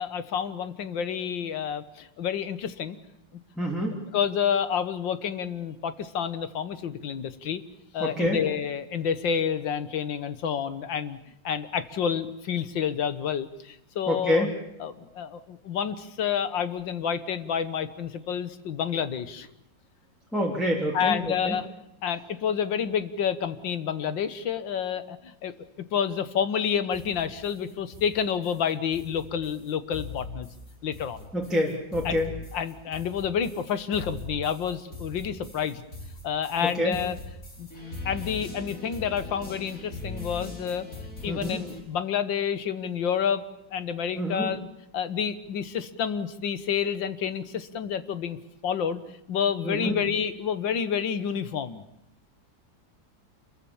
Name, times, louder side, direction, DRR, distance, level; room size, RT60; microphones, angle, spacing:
voice 1, 0.0-3.0 4.1-7.6 7.9-11.2 11.4-14.5 14.8-19.5 20.9-21.7 22.0-25.5 25.9-30.5 30.8-31.3 32.1-32.2 32.5-35.8 36.2-37.2 37.6-37.7 38.1-40.9 41.2-43.4 43.7-44.7 44.9-48.4 48.6-49.0 49.3-51.8, left 7 dB, 80° left, 12 dB, 1.9 m, -29 dB
voice 2, 3.6-4.0 8.0-8.4 14.1-14.5 20.3-21.6 31.3-32.3 36.6-36.9 41.3-41.6 44.1-44.5 49.6-50.0, equal, ahead, -3 dB, 3.3 m, -27 dB
sound 1, 26.9-41.8, left 2 dB, 45° left, 5.2 m, -41 dB
28.0 x 22.5 x 7.2 m, 0.78 s
omnidirectional pair, 2.0 m